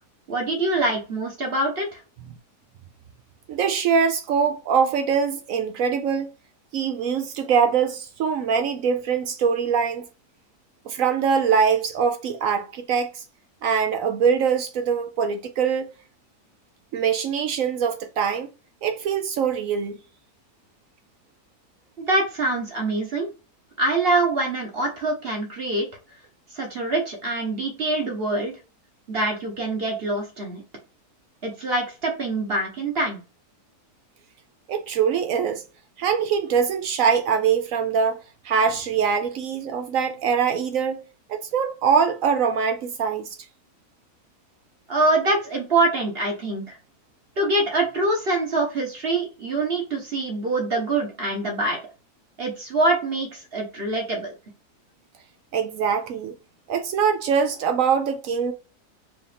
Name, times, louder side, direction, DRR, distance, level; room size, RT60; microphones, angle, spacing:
voice 1, 0.3-2.0 22.0-23.3 23.8-25.9 26.5-28.5 29.1-30.6 31.4-33.2 44.9-46.8 47.4-51.8 52.4-54.3, right 2 dB, 45° right, 1.1 m, -24 dB
voice 2, 3.5-6.3 6.7-10.1 10.9-13.2 13.6-15.9 16.9-18.5 18.8-20.0 34.7-35.6 36.0-38.2 38.4-41.0 41.3-43.4 55.5-56.3 56.7-58.5, right 6 dB, 70° right, 0.9 m, -23 dB
4.8 x 2.5 x 3.3 m
omnidirectional pair, 1.6 m